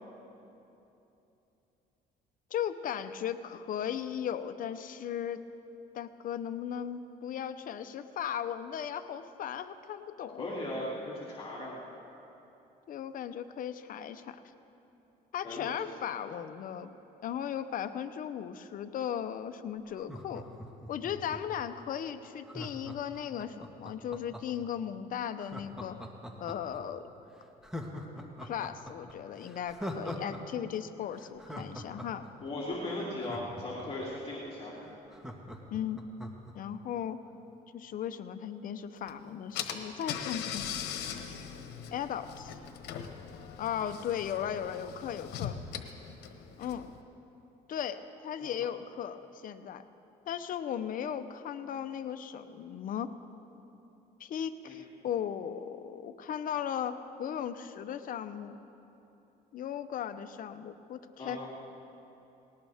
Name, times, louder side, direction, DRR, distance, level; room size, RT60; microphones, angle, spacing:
voice 1, 2.5-5.4 5.9-10.5 12.9-14.4 15.3-16.9 17.2-20.4 20.9-26.0 26.4-27.1 28.4-32.2 35.7-36.0 36.5-37.2 37.7-40.7 41.9-42.6 43.6-45.6 46.6-46.9 47.7-49.2 49.4-49.8 50.3-53.1 54.2-58.6 59.5-61.4, left 9 dB, 55° left, 10 dB, 0.8 m, -37 dB
voice 2, 10.4-11.8 15.4-15.9 32.4-34.7 48.4-48.5 54.6-54.7 61.2-61.5, left 1 dB, 35° left, -6 dB, 2.9 m, -37 dB
Laughter, 19.9-21.6 22.5-24.7 25.4-26.8 27.2-27.3 27.6-30.4 30.7-30.8 31.1-34.1 34.5-34.6 34.8-36.5 36.9-37.0, equal, 5° right, 1.5 m, -42 dB
Car / Engine, 39.1-39.2 39.5-47.0, left 8 dB, 80° left, 1.2 m, -40 dB
19.0 x 18.5 x 3.5 m, 3.0 s
cardioid pair, 110°, 17 cm